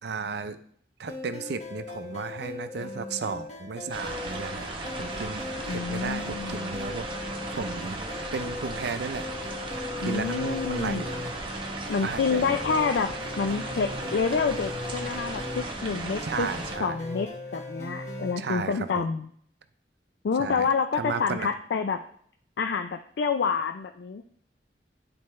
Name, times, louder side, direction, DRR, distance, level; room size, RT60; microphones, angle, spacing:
voice 1, 0.0-0.6 1.0-4.7 5.0-9.3 10.0-11.3 12.0-12.8 16.2-17.0 18.4-19.1 20.4-21.5, right 5 dB, 65° right, 11 dB, 0.5 m, -34 dB
sound 1, 1.1-18.3, left 2 dB, 40° left, 1.4 m, -39 dB
sound 2, 3.9-16.8, right 2 dB, 30° right, 0.9 m, -36 dB
voice 2, 5.7-6.7 10.0-11.0 11.9-16.5 16.8-19.3 20.2-22.0 22.6-24.2, left 5 dB, 70° left, 6 dB, 0.4 m, -28 dB
10.5 x 4.3 x 3.2 m, 0.63 s
head